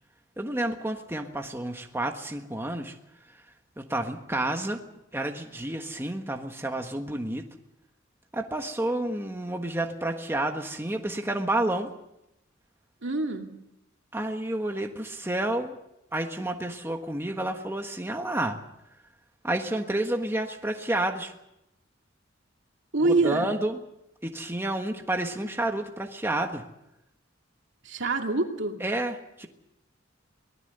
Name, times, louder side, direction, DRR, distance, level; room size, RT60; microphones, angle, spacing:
voice 1, 0.4-2.9 3.8-4.8 5.1-7.4 8.3-11.9 14.1-15.7 16.1-18.6 19.4-21.3 23.0-23.8 24.2-26.6 28.8-29.5, right 1 dB, 10° right, 4 dB, 1.4 m, -30 dB
voice 2, 13.0-13.5 22.9-23.5 27.8-28.8, right 3 dB, 65° right, 3 dB, 2.5 m, -25 dB
24.0 x 18.5 x 6.7 m, 0.85 s
head